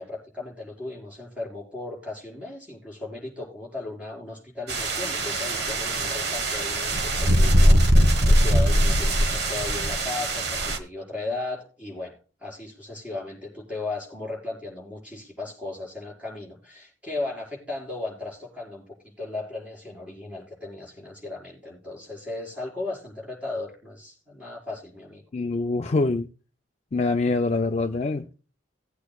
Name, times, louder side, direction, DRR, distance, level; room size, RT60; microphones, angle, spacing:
voice 1, 0.0-25.2, left 2 dB, 10° right, 5.2 m, -36 dB
sound 1, 4.7-10.8, equal, 60° right, 1.4 m, -21 dB
voice 2, 25.3-26.3 26.9-28.3, left 3 dB, 35° left, 0.5 m, -24 dB
19.0 x 8.4 x 2.3 m
head